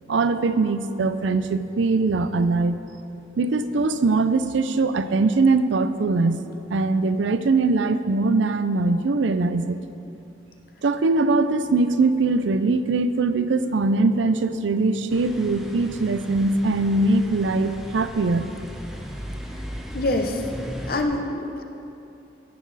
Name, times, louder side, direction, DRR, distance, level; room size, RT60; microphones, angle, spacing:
voice 1, 0.1-2.8 3.4-6.4 6.7-9.8 10.8-18.5, right 3 dB, 80° right, 11 dB, 0.5 m, -21 dB
sound 1, 15.1-21.0, equal, 5° right, 0.8 m, -37 dB
voice 2, 19.9-20.4 20.9-21.6, left 2 dB, 50° left, 4 dB, 0.8 m, -25 dB
16.0 x 6.1 x 4.1 m, 2.8 s
head